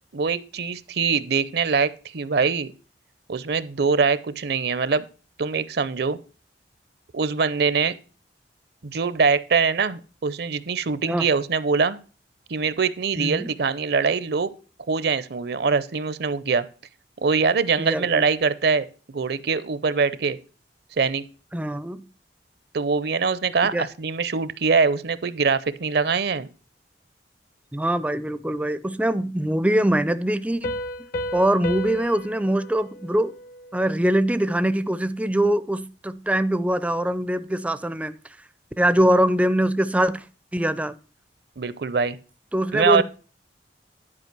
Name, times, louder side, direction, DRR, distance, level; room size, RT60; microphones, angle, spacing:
voice 1, 0.1-2.7 3.3-5.0 5.4-6.2 7.1-8.0 8.8-12.0 12.5-14.5 14.9-16.7 17.2-18.9 19.1-20.4 21.0-21.2 22.7-26.5 41.6-42.2 42.7-43.0, right 5 dB, 65° right, 0.6 m, -23 dB
voice 2, 13.2-13.5 17.8-18.2 21.5-22.0 23.7-23.9 27.7-30.7 31.3-33.3 33.7-38.1 38.8-40.2 40.5-40.9 42.5-43.0, right 1 dB, 10° right, 0.4 m, -23 dB
Piano, 30.6-34.1, left 1 dB, 55° left, 0.8 m, -34 dB
11.0 x 4.9 x 6.0 m
head